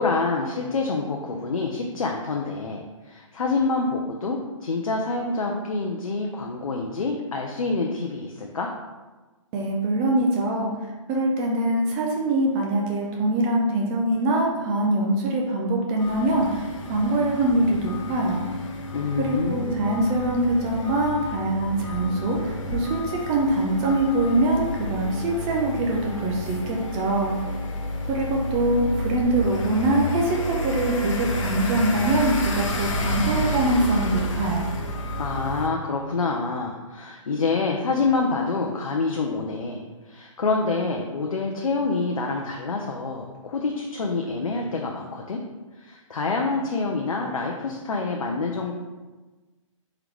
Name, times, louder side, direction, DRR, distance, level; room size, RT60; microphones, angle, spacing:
voice 1, 0.0-8.7 18.9-20.0 35.2-45.4 45.8-48.8, left 3 dB, 90° left, 1 dB, 0.6 m, -27 dB
voice 2, 9.5-10.7 11.1-18.4 19.2-27.3 28.1-34.6, right 1 dB, 15° right, -1 dB, 0.4 m, -23 dB
sound 1, 16.0-35.7, left 1 dB, 65° left, 0.9 m, -30 dB
3.7 x 3.4 x 3.0 m, 1.2 s
hypercardioid pair, 145°, 17 cm